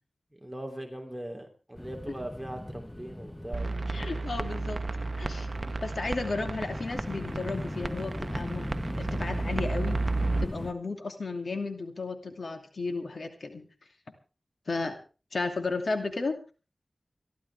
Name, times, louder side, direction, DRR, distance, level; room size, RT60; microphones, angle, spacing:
voice 1, 0.3-3.8 5.5-5.8, right 1 dB, 5° right, 3 dB, 3.1 m, -40 dB
sound 1, 1.7-10.7, left 1 dB, 15° left, 1.0 m, -38 dB
sound 2, 3.5-10.4, right 3 dB, 55° right, 0.9 m, -33 dB
voice 2, 3.9-4.8 5.2-5.5 5.8-10.0 10.4-13.7 14.7-15.0 15.3-16.4, left 3 dB, 80° left, 5 dB, 2.6 m, -34 dB
25.5 x 12.5 x 3.5 m, 0.34 s
wide cardioid pair, 65°, 0 cm